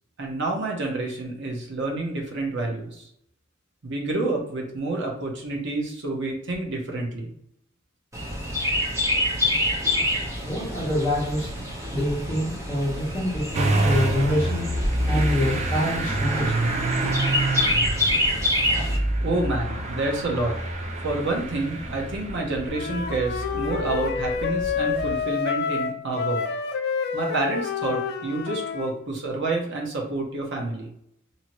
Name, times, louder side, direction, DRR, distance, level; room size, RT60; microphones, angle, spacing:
voice 1, 0.2-3.1 3.8-7.3 19.2-20.6 21.0-26.4 27.1-30.9, right 2 dB, 60° right, 0 dB, 0.8 m, -28 dB
Chirp tweet, 8.1-19.0, left 1 dB, 15° right, 0.8 m, -27 dB
voice 2, 10.4-11.5 11.9-14.7 15.1-16.7, equal, 10° left, -9 dB, 1.0 m, -26 dB
Motor vehicle (road) / Engine starting, 13.5-25.2, right 1 dB, 35° right, 0.4 m, -27 dB
Wind instrument woodwind instrument, 22.7-28.9, left 6 dB, 50° left, 0.3 m, -28 dB
2.7 x 2.7 x 2.9 m, 0.73 s
head